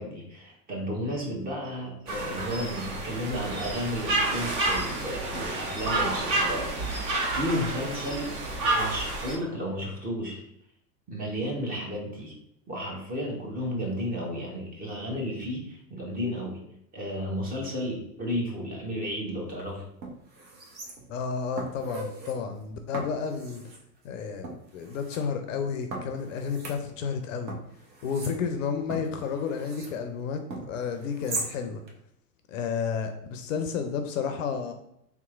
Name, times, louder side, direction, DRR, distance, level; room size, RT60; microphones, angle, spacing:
voice 1, 0.0-6.6 6.9-8.3 8.7-10.4 11.1-12.3 12.7-16.6 16.9-19.8, equal, 20° right, -1 dB, 0.8 m, -33 dB
sound 1, 2.1-9.4, right 2 dB, 40° right, 1.2 m, -29 dB
sound 2, 19.5-19.6 20.0-21.2 21.6-22.4 22.9-23.8 24.4-25.2 25.9-27.2 27.5-30.0 30.5-31.5 31.9-32.0, right 2 dB, 80° right, 1.0 m, -39 dB
voice 2, 21.1-23.6 24.0-27.5 28.0-30.4 30.7-31.8 32.5-34.7, left 6 dB, 50° left, 6 dB, 0.5 m, -31 dB
3.5 x 2.9 x 2.4 m, 0.75 s
hypercardioid pair, 100°, 49 cm